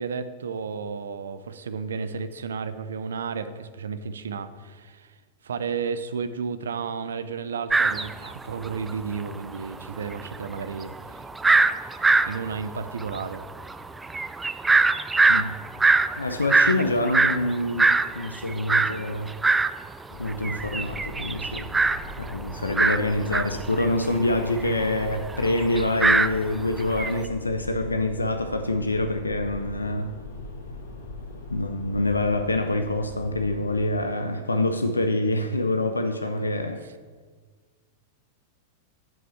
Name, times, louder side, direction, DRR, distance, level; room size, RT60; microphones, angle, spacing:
voice 1, 0.0-5.2 5.4-11.3 11.9-13.4 34.3-34.6 36.2-36.5 36.8-36.9, right 5 dB, 75° right, 0.6 m, -33 dB
sound 1, 7.7-8.9 9.2-9.3 9.5-19.7 20.1-27.2, right 3 dB, 10° right, 0.4 m, -23 dB
voice 2, 16.2-19.3 20.2-21.7 22.2-30.1 31.5-36.9, left 2 dB, 90° left, 0.5 m, -26 dB
sound 2, 20.1-33.8, left 2 dB, 70° left, 1.7 m, -40 dB
7.4 x 5.6 x 7.2 m
figure-of-eight pair, 95°, 0 cm